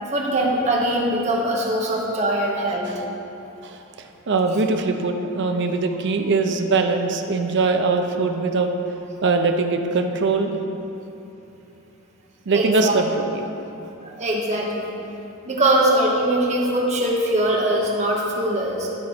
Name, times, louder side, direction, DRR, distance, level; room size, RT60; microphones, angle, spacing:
voice 1, 0.1-3.0 12.5-13.0 14.0-14.9 15.4-18.9, right 1 dB, 30° right, -2 dB, 1.1 m, -22 dB
voice 2, 3.6-8.7 9.2-10.6 12.5-13.5, right 3 dB, 55° right, 5 dB, 0.6 m, -22 dB
12.0 x 4.3 x 4.3 m, 2.9 s
head